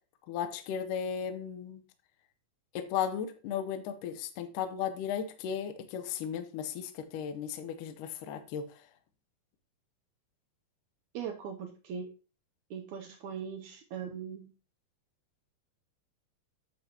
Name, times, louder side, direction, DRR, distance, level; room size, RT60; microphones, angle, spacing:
voice 1, 0.3-1.8 2.7-8.6, left 8 dB, 75° left, 8 dB, 2.3 m, -35 dB
voice 2, 11.1-12.1 12.7-14.5, right 7 dB, 85° right, 5 dB, 1.7 m, -40 dB
9.2 x 7.5 x 2.9 m, 0.35 s
omnidirectional pair, 4.2 m